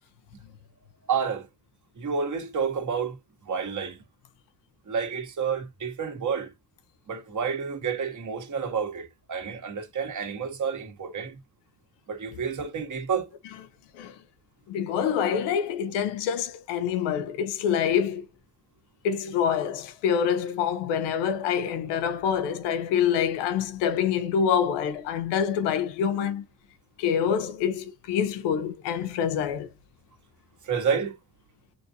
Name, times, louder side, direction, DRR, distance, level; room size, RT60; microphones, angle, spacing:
voice 1, 1.1-1.4 2.0-3.1 3.5-4.0 4.9-6.5 7.1-11.4 12.1-13.3 30.7-31.1, right 6 dB, 45° right, 1.7 m, -29 dB
voice 2, 14.7-18.2 19.0-26.4 27.0-29.7, left 8 dB, 85° left, 0.8 m, -26 dB
6.8 x 2.7 x 2.7 m
supercardioid pair, 75°, 41 cm